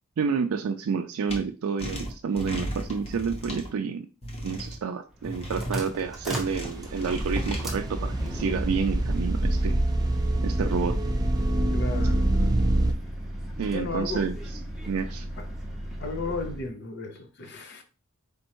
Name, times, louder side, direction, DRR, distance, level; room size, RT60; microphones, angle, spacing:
voice 1, 0.2-4.1 4.4-9.8 10.4-11.0 13.6-14.4 14.9-15.3, right 5 dB, 80° right, 0.4 m, -29 dB
sound 1, 1.3-1.4 1.8-3.7 4.2-4.8 5.2-5.8 6.3-7.6, equal, 30° left, 1.0 m, -35 dB
sound 2, 5.1-16.7, equal, ahead, 0.8 m, -35 dB
sound 3, 6.1-12.9, right 1 dB, 20° right, 0.4 m, -26 dB
voice 2, 11.7-12.6 13.7-14.3 15.4-15.5 16.0-17.8, left 3 dB, 55° left, 0.8 m, -34 dB
4.3 x 3.5 x 3.0 m
head